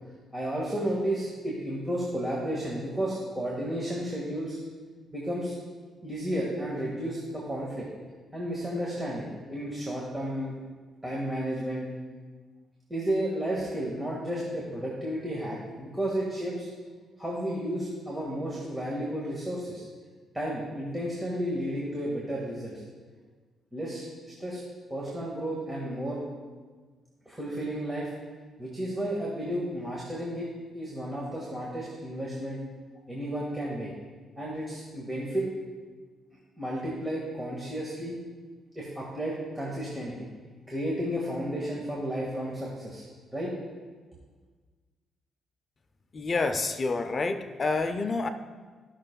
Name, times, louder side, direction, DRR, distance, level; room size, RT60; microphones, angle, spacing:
voice 1, 0.3-4.6 5.1-5.5 6.0-7.8 8.3-10.5 11.0-11.9 12.9-16.7 17.2-19.8 20.3-22.8 23.7-24.0 24.4-24.6 24.9-26.2 27.2-28.1 28.6-30.5 30.7-32.6 33.1-33.9 34.4-35.5 36.6-38.1 38.7-40.3 40.7-43.1 43.3-43.5, right 1 dB, 15° right, -4 dB, 1.7 m, -32 dB
voice 2, 46.1-48.3, left 3 dB, 40° left, 9 dB, 0.5 m, -28 dB
15.5 x 6.2 x 2.2 m, 1.4 s
cardioid pair, 90°, 0 cm